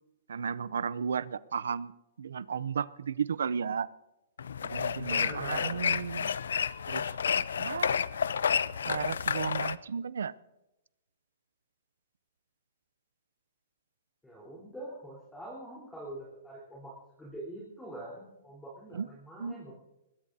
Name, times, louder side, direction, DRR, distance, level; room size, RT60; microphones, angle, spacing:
voice 1, 0.3-1.9 2.2-3.9 4.6-6.3 6.9-7.1 7.6-8.0 8.8-10.3 18.9-19.1 19.4-19.5, right 6 dB, 85° right, 19 dB, 0.5 m, -34 dB
sound 1, 4.4-9.8, left 7 dB, 80° left, 0.5 m, -30 dB
voice 2, 5.0-5.8 14.2-19.7, right 1 dB, 5° left, -5 dB, 3.9 m, -44 dB
21.0 x 18.5 x 2.7 m, 0.95 s
hypercardioid pair, 145°, 0 cm